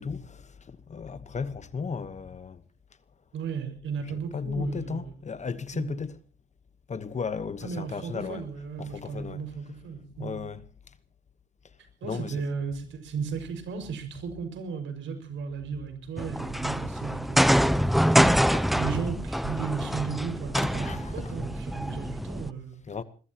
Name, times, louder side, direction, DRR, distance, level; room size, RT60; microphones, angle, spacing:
voice 1, 0.0-2.6 4.1-6.2 6.9-8.4 8.8-9.4 10.1-10.7 12.0-12.4 17.5-18.0 18.5-18.8 20.6-21.3 22.9-23.0, left 5 dB, 35° left, 1.2 m, -35 dB
voice 2, 3.3-5.0 5.7-5.9 7.6-10.5 12.0-17.6 18.2-22.8, right 6 dB, 75° right, 5.8 m, -35 dB
sound 1, 16.2-22.5, equal, ahead, 0.7 m, -25 dB
22.5 x 21.0 x 3.0 m
cardioid pair, 90°, 20 cm